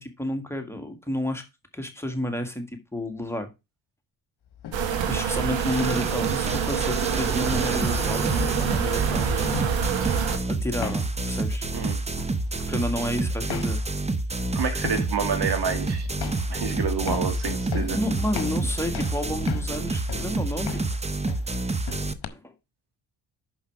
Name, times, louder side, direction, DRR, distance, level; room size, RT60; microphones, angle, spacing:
voice 1, 0.0-1.4 1.7-3.5 4.9-9.7 10.5-11.7 12.7-13.8 17.7-20.8 22.3-22.5, left 1 dB, 5° left, 1.9 m, -31 dB
sound 1, 4.5-22.3, left 9 dB, 60° left, 1.1 m, -39 dB
sound 2, 4.7-10.4, right 8 dB, 75° right, 1.5 m, -26 dB
sound 3, 5.6-22.1, right 3 dB, 15° right, 0.7 m, -29 dB
voice 2, 14.5-16.1 16.5-18.0, right 6 dB, 60° right, 2.1 m, -28 dB
6.1 x 5.6 x 4.7 m
supercardioid pair, 60°, 45 cm